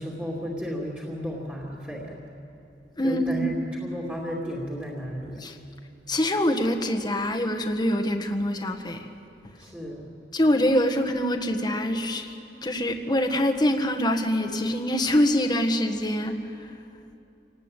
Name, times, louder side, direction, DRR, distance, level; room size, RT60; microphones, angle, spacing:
voice 1, 0.0-2.2 3.0-5.4 9.6-10.1, equal, 10° right, -4 dB, 2.7 m, -33 dB
voice 2, 3.0-3.5 5.4-5.6 6.1-9.1 10.3-12.3 12.6-16.7, left 1 dB, 25° left, 4 dB, 1.6 m, -24 dB
27.0 x 19.0 x 9.1 m, 2.8 s
head